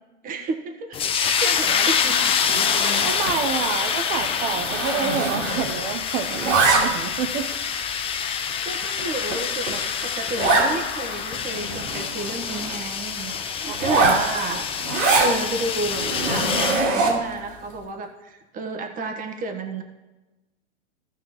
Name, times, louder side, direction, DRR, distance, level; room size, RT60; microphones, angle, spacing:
voice 1, 0.2-2.3 3.3-3.4 3.8-3.9 8.6-14.8 15.2-19.8, right 3 dB, 20° right, 3 dB, 1.3 m, -31 dB
sound 1, 0.9-16.9, left 7 dB, 15° left, 0.6 m, -26 dB
Zipper (clothing), 2.4-3.4 3.7-3.9 4.2-5.9 6.1-7.2 7.8-7.9 8.5-8.6 9.0-9.1 9.3-9.4 9.7-9.8 10.4-10.7 11.2-11.3 11.5-12.8 13.7-15.3 15.9-17.3, right 3 dB, 80° right, 3.2 m, -23 dB
voice 2, 3.0-7.5 13.7-13.9, right 7 dB, 45° right, 3 dB, 0.9 m, -28 dB
16.5 x 5.9 x 3.1 m, 1.1 s
hypercardioid pair, 135°, 37 cm